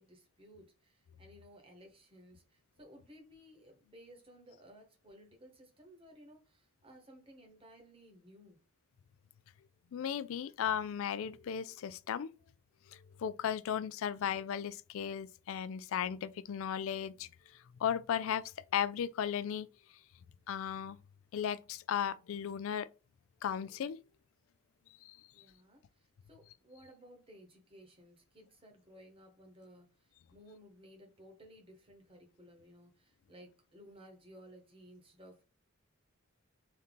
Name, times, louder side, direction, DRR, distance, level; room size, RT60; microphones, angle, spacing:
voice 1, 0.0-8.6 25.3-35.5, equal, 25° right, 1.1 m, -58 dB
voice 2, 9.9-12.3 12.9-17.3 17.8-18.4 18.7-19.7 20.5-21.0 21.3-22.9 23.4-24.0 25.0-25.2, left 8 dB, 65° left, 0.3 m, -35 dB
3.8 x 2.7 x 3.5 m
head